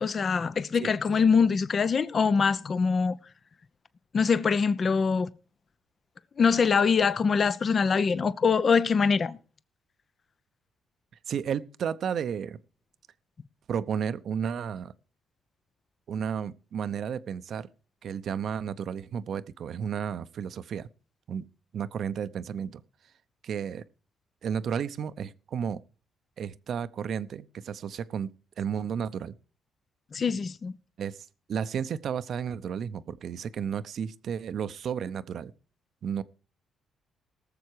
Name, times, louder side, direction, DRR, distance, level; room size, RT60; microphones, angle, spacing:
voice 1, 0.0-3.2 4.1-5.3 6.4-9.4 30.1-30.7, left 5 dB, 45° left, 0.8 m, -24 dB
voice 2, 11.3-12.6 13.7-14.9 16.1-17.7 18.0-20.9 21.3-21.5 21.7-22.8 23.4-23.8 24.4-25.8 26.4-28.3 28.6-29.3 31.0-35.5 36.0-36.2, right 7 dB, 60° right, 0.7 m, -32 dB
18.5 x 7.1 x 4.8 m
cardioid pair, 90°, 0 cm